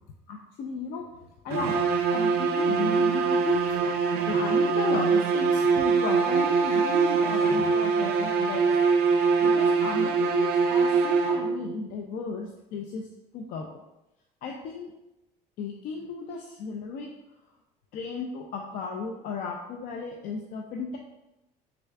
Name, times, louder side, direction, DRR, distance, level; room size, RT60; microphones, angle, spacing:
voice 1, 0.3-3.9 4.3-8.8 9.4-13.1 13.3-13.8 14.4-14.9 15.6-17.1 17.9-21.0, left 4 dB, 65° left, 1 dB, 0.4 m, -35 dB
sound 1, 1.5-11.7, right 5 dB, 70° right, 0.4 m, -23 dB
3.5 x 2.3 x 3.2 m, 0.93 s
supercardioid pair, 90°, 16 cm